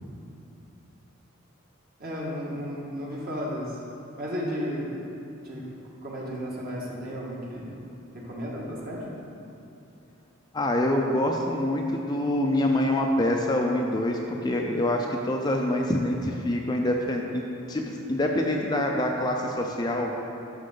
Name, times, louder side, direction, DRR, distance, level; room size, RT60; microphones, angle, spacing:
voice 1, 2.0-3.8 4.2-5.0 5.4-5.7 6.0-7.8 8.1-9.0, equal, 45° right, -4 dB, 1.7 m, -33 dB
voice 2, 10.5-20.1, left 1 dB, 20° left, 1 dB, 0.5 m, -26 dB
11.5 x 6.4 x 3.9 m, 2.8 s
head